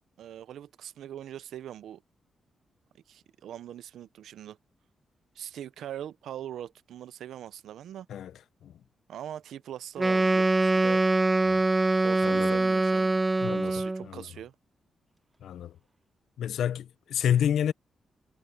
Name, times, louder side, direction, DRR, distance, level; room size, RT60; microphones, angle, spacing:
voice 1, 0.2-2.0 3.1-4.6 5.4-8.1 9.1-11.0 12.0-13.2 13.6-14.5, right 11 dB, 85° right, 0.7 m, -41 dB
Wind instrument woodwind instrument, 10.0-14.1, right 2 dB, 20° right, 0.5 m, -24 dB
voice 2, 12.2-12.6 13.4-14.2 15.4-15.7 16.4-17.7, left 9 dB, 85° left, 0.7 m, -29 dB
cardioid pair, 75°, 0 cm